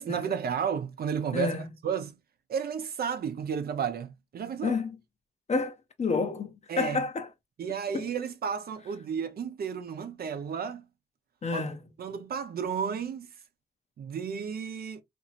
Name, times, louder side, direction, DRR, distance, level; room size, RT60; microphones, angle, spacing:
voice 1, 0.0-1.6 1.8-2.1 2.5-4.8 6.7-7.0 7.6-10.9 11.5-11.6 12.0-13.3 14.0-15.0, right 7 dB, 60° right, 0.6 m, -32 dB
voice 2, 1.3-1.6 4.6-4.9 5.5-7.3 7.9-8.0 11.4-11.8, left 4 dB, 40° left, 0.7 m, -29 dB
2.9 x 2.6 x 2.4 m
cardioid pair, 60°, 17 cm